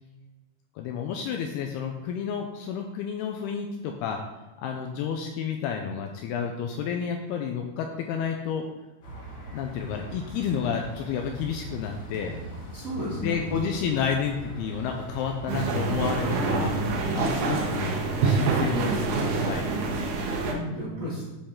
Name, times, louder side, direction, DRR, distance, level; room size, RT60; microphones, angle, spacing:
voice 1, 0.8-4.2 4.6-8.6 9.5-12.4 13.1-16.7 17.1-18.0 18.2-19.2 19.4-19.6, left 7 dB, 80° left, 3 dB, 2.4 m, -30 dB
sound 1, 9.0-16.8, right 1 dB, 50° left, 2.5 m, -41 dB
voice 2, 12.7-13.4 18.4-19.2 20.5-21.2, equal, 25° right, -7 dB, 2.3 m, -33 dB
sound 2, 15.5-20.5, right 3 dB, 80° right, 1.7 m, -26 dB
11.5 x 5.5 x 3.7 m, 1.2 s
omnidirectional pair, 5.0 m